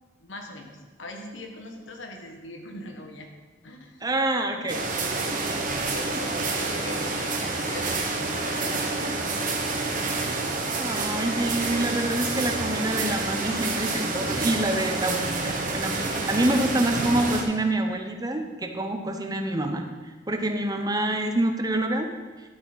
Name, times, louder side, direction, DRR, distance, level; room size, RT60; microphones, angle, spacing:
voice 1, 0.2-3.3 3.6-4.1 5.9-10.2 10.7-11.0, left 1 dB, 85° left, 2 dB, 1.6 m, -42 dB
voice 2, 4.0-4.8 10.8-16.0 16.3-19.9 20.3-22.1, right 1 dB, 20° right, 5 dB, 0.8 m, -26 dB
sound 1, 4.7-17.4, right 3 dB, 45° right, 1.3 m, -28 dB
12.0 x 8.4 x 4.1 m, 1.3 s
head